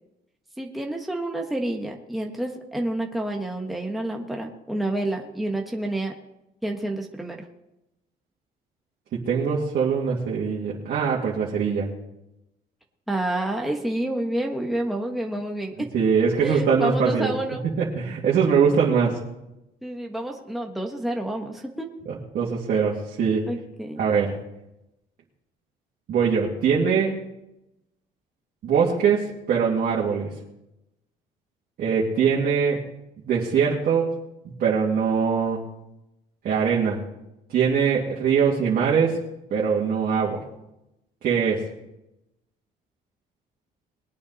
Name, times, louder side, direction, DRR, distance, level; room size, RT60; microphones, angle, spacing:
voice 1, 0.6-6.1 6.6-7.4 13.1-15.9 16.4-17.6 18.9-19.0 19.8-21.9 23.5-24.0, right 1 dB, ahead, 1 dB, 1.5 m, -29 dB
voice 2, 9.1-11.9 15.9-17.3 17.8-19.2 22.3-23.4 24.0-24.3 26.1-27.1 28.6-30.3 31.8-32.8 33.3-34.1 34.6-35.6 36.4-37.0 37.5-39.2 39.5-40.4 41.2-41.6, right 6 dB, 60° right, -4 dB, 2.5 m, -22 dB
21.5 x 8.8 x 4.2 m, 0.88 s
cardioid pair, 110°, 17 cm